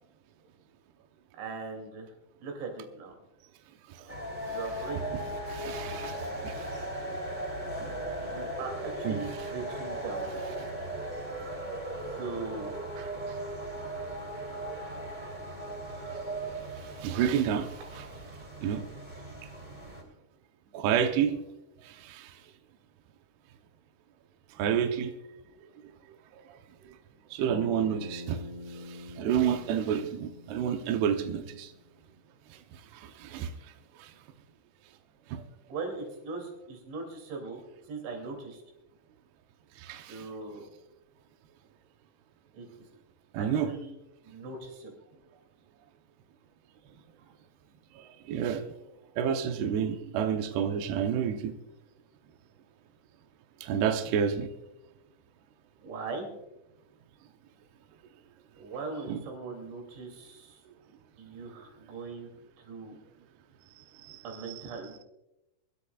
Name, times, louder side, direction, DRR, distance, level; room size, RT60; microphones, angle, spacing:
voice 1, 1.3-2.1 2.4-3.1 4.5-5.2 8.2-10.3 12.2-12.7 35.7-38.6 40.1-40.7 42.5-42.7 43.4-44.9 55.8-56.3 58.5-60.6 61.2-62.3 62.6-63.0 64.2-65.0, right 4 dB, 65° right, 3 dB, 5.0 m, -40 dB
sound 1, 4.1-20.0, right 1 dB, 10° right, 2.1 m, -37 dB
voice 2, 5.5-6.2 6.4-6.7 7.8-7.9 9.0-9.2 13.0-13.4 17.0-17.7 17.9-18.0 18.6-18.8 20.7-21.3 21.9-22.3 24.6-25.1 27.3-28.4 28.9-31.7 32.9-33.5 34.0-34.1 35.3-35.4 39.8-40.3 43.3-43.7 48.0-48.6 49.2-51.5 53.6-54.5 59.1-59.2 64.0-64.2 64.5-64.6, right 8 dB, 85° right, 5 dB, 2.3 m, -29 dB
Bass guitar, 27.5-31.8, left 2 dB, 75° left, 1.7 m, -44 dB
24.0 x 13.0 x 2.4 m, 0.92 s
omnidirectional pair, 6.0 m